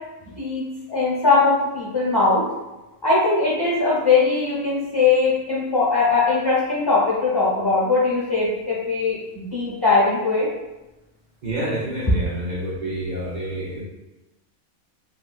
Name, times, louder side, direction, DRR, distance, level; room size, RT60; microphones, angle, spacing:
voice 1, 0.9-2.4 3.0-10.5, left 4 dB, 20° left, -8 dB, 0.9 m, -20 dB
voice 2, 11.4-13.8, right 1 dB, 85° right, -8 dB, 0.4 m, -28 dB
3.0 x 3.0 x 2.4 m, 1.0 s
omnidirectional pair, 1.6 m